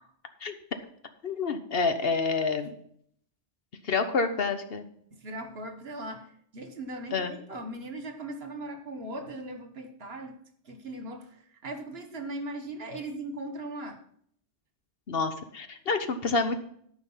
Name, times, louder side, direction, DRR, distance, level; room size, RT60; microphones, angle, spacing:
voice 1, 1.2-2.7 3.8-4.8 7.1-7.3 15.1-16.6, left 4 dB, 60° left, 8 dB, 1.1 m, -28 dB
voice 2, 5.1-10.4 10.6-14.0, right 1 dB, 60° right, 7 dB, 1.6 m, -39 dB
13.0 x 5.2 x 5.6 m, 0.65 s
omnidirectional pair, 1.2 m